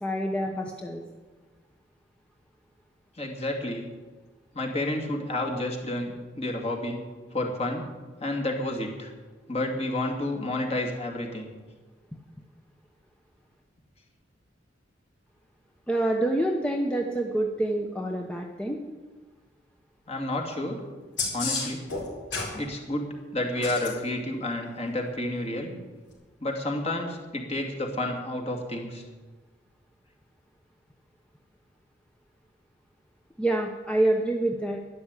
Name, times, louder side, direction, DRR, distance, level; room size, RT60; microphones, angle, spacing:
voice 1, 0.0-1.0 15.9-18.8 33.4-34.8, right 1 dB, 5° left, 1 dB, 0.9 m, -27 dB
voice 2, 3.2-3.8 4.5-7.0 7.3-7.9 8.2-9.1 9.5-11.5 20.1-20.8 21.3-21.8 22.5-25.8 26.4-29.0, left 1 dB, 35° left, 1 dB, 2.4 m, -30 dB
sound 1, 21.2-22.6 23.6-23.9 26.1-26.2, left 4 dB, 70° left, 4.5 m, -30 dB
12.5 x 11.0 x 8.2 m, 1.3 s
head